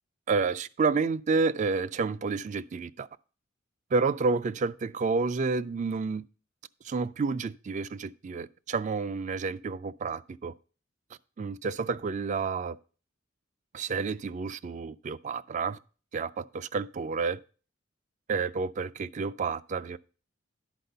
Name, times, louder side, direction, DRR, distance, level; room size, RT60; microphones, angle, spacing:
voice 1, 0.3-3.1 3.9-6.2 6.8-10.5 11.4-12.8 13.7-15.8 16.1-17.4 18.3-20.0, right 4 dB, 40° right, 0.4 m, -30 dB
11.0 x 4.1 x 6.6 m
head